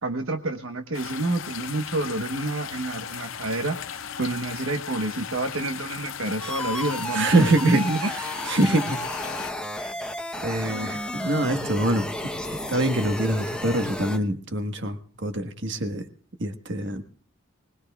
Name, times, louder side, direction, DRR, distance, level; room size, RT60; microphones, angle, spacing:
voice 1, 0.0-3.8 4.2-8.0, right 2 dB, 80° right, 5 dB, 1.2 m, -28 dB
sound 1, 0.9-9.5, left 7 dB, 75° left, 0.6 m, -37 dB
sound 2, 6.4-14.2, left 1 dB, 5° left, 0.9 m, -32 dB
voice 2, 7.1-9.0 9.8-10.0 10.4-16.1 16.4-17.0, right 1 dB, 60° right, 7 dB, 1.4 m, -25 dB
24.5 x 19.5 x 2.3 m, 0.43 s
head